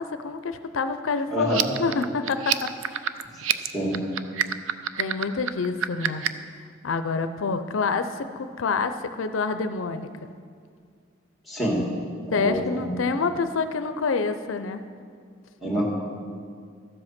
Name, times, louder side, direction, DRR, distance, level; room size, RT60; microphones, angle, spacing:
voice 1, 0.0-2.5 5.0-6.2 6.8-10.1 12.3-14.8, left 4 dB, 80° left, 9 dB, 0.5 m, -27 dB
voice 2, 1.3-1.7 3.7-4.0 11.5-11.8 12.3-13.0 15.6-15.9, equal, ahead, -3 dB, 2.4 m, -26 dB
sound 1, 1.4-6.5, right 10 dB, 85° right, 0.5 m, -27 dB
13.5 x 7.9 x 5.8 m, 2.1 s
head